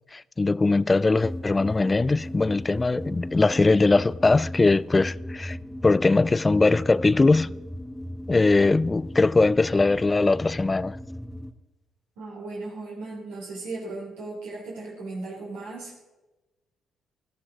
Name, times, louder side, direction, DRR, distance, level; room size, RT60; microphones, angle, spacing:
voice 1, 0.1-5.6 5.8-7.5 8.3-11.0, left 3 dB, 25° left, 0.3 m, -21 dB
sound 1, 1.2-11.5, left 1 dB, 5° left, 1.3 m, -37 dB
voice 2, 12.2-15.9, right 3 dB, 80° right, 3.0 m, -36 dB
16.0 x 11.5 x 3.8 m
hypercardioid pair, 50°, 0 cm